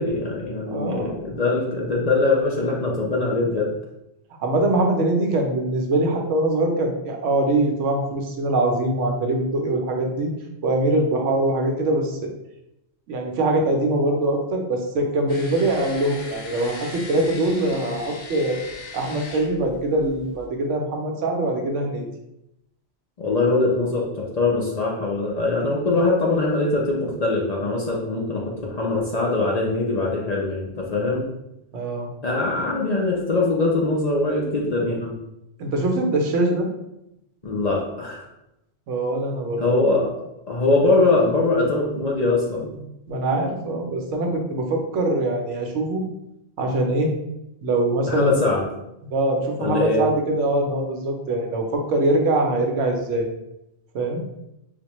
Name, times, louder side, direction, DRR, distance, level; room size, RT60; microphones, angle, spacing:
voice 1, 0.0-3.7 23.2-31.3 32.2-35.1 37.4-38.3 39.6-42.8 48.1-48.7 49.6-50.0, left 2 dB, 45° left, -3 dB, 0.5 m, -22 dB
voice 2, 0.7-1.2 4.4-10.3 10.6-12.3 13.1-18.6 18.9-22.1 31.7-32.1 35.6-36.7 38.9-40.0 43.1-46.0 46.6-47.1 47.6-48.4 49.0-53.3 53.9-54.2, right 2 dB, 90° right, 2 dB, 1.0 m, -23 dB
sound 1, 15.3-20.5, left 3 dB, 70° left, 1.0 m, -39 dB
5.0 x 2.1 x 3.0 m, 0.86 s
omnidirectional pair, 1.2 m